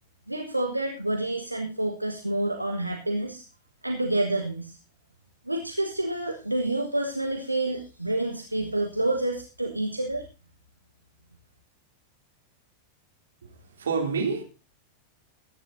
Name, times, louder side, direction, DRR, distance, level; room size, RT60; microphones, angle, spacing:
voice 1, 0.3-3.4 3.8-4.8 5.5-10.2, right 1 dB, 85° right, 1.3 m, -28 dB
voice 2, 13.4-14.4, right 5 dB, 65° right, 3.2 m, -28 dB
21.0 x 9.9 x 2.7 m
figure-of-eight pair, 90°, 0 cm